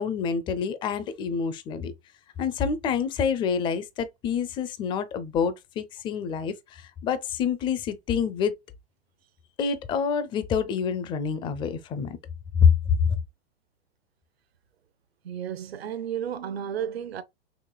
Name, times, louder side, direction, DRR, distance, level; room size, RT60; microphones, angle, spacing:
voice 1, 0.0-1.9 2.4-8.6 9.6-12.2 12.6-12.7 13.0-13.1, left 6 dB, 15° left, 0.4 m, -27 dB
voice 2, 15.2-17.2, right 9 dB, 70° right, 0.7 m, -32 dB
4.9 x 3.1 x 2.2 m
figure-of-eight pair, 105°, 32 cm